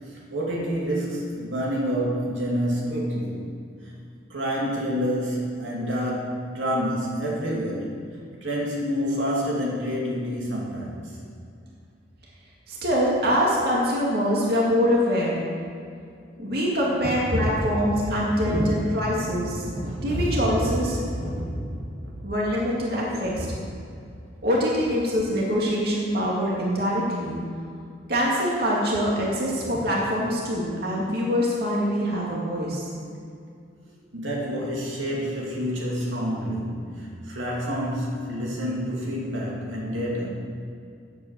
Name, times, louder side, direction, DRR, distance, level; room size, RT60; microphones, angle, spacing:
voice 1, 0.0-3.4 3.8-3.9 4.3-8.0 8.4-11.2 17.3-17.7 18.4-18.8 19.2-20.4 21.1-21.9 23.4-23.5 34.1-40.3, equal, 80° right, -4 dB, 2.5 m, -28 dB
voice 2, 12.7-15.4 16.4-19.6 20.0-21.0 22.2-23.5 24.4-27.4 28.1-32.8, equal, 55° right, -4 dB, 2.3 m, -24 dB
9.6 x 8.6 x 7.6 m, 2.4 s
head